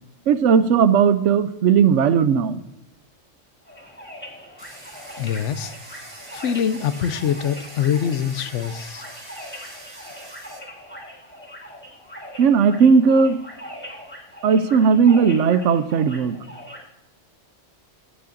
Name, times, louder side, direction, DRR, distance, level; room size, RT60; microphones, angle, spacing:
voice 1, 0.3-2.6 12.4-13.4 14.4-16.4, right 6 dB, 80° right, 13 dB, 1.0 m, -16 dB
sound 1, 3.6-16.8, equal, 10° left, 2.4 m, -41 dB
Domestic sounds home sounds, 4.6-10.6, right 1 dB, 50° right, 3.0 m, -43 dB
voice 2, 5.2-6.0 6.3-9.0, left 8 dB, 75° left, 14 dB, 0.9 m, -24 dB
14.0 x 8.4 x 2.6 m, 0.92 s
omnidirectional pair, 1.3 m